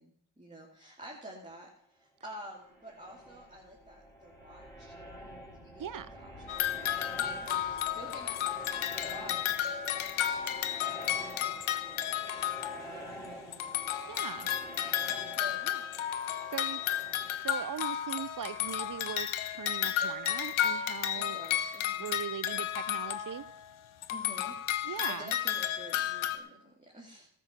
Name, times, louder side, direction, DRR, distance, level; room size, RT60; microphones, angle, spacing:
voice 1, 0.0-10.6 11.0-12.5 12.8-13.9 14.2-14.8 15.1-15.9 21.1-22.1 24.1-27.3, right 1 dB, 15° right, -3 dB, 2.6 m, -50 dB
sound 1, 2.5-19.1, right 1 dB, 5° left, 3.5 m, -48 dB
voice 2, 5.8-6.1 14.1-14.5 16.5-16.8 17.4-21.4 22.0-23.5 24.8-25.3, right 9 dB, 45° right, 18 dB, 0.6 m, -40 dB
sound 2, 6.5-13.3 13.5-23.7 24.0-26.4, left 11 dB, 85° left, 0.8 m, -33 dB
13.0 x 7.2 x 5.6 m, 0.69 s
supercardioid pair, 50°, 47 cm